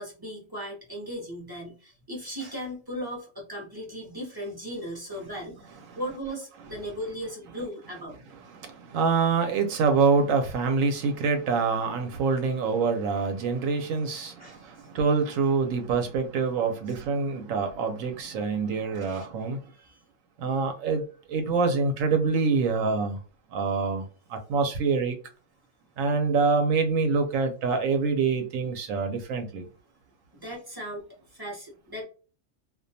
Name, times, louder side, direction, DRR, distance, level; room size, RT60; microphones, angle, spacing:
voice 1, 0.0-8.2 14.4-14.9 18.9-19.3 19.7-20.0 30.3-32.0, equal, 25° right, 0.5 m, -37 dB
voice 2, 8.5-19.6 20.4-21.0 21.3-23.2 23.5-25.2 26.0-29.7, right 4 dB, 85° right, 1.0 m, -26 dB
2.3 x 2.2 x 2.6 m
omnidirectional pair, 1.3 m